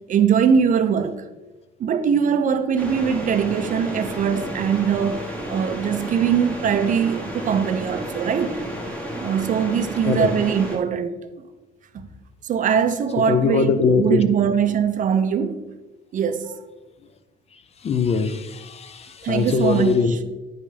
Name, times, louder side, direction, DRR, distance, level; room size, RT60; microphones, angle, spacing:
voice 1, 0.1-1.3 1.8-8.6 9.2-11.2 11.9-12.1 12.4-15.6 16.1-16.6 19.2-20.2, right 7 dB, 40° right, 0.5 m, -22 dB
sound 1, 2.8-10.8, right 1 dB, 5° left, 1.1 m, -32 dB
voice 2, 13.3-14.2 17.8-20.2, left 5 dB, 30° left, 0.4 m, -21 dB
9.6 x 5.3 x 3.4 m
cardioid pair, 175°, 20 cm